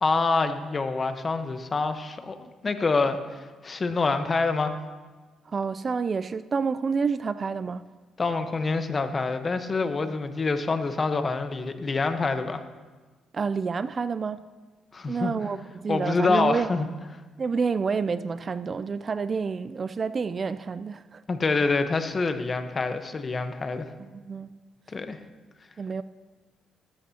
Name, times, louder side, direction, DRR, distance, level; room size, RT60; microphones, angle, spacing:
voice 1, 0.0-3.2 3.6-4.8 8.2-12.6 14.9-15.3 15.9-16.9 21.3-23.9 24.9-25.2, left 3 dB, 35° left, 1.1 m, -26 dB
voice 2, 5.5-7.9 13.3-14.4 15.1-16.7 17.4-21.2 24.0-24.6 25.8-26.0, right 5 dB, 40° right, 0.4 m, -29 dB
19.0 x 13.0 x 2.9 m
cardioid pair, 90°, 0 cm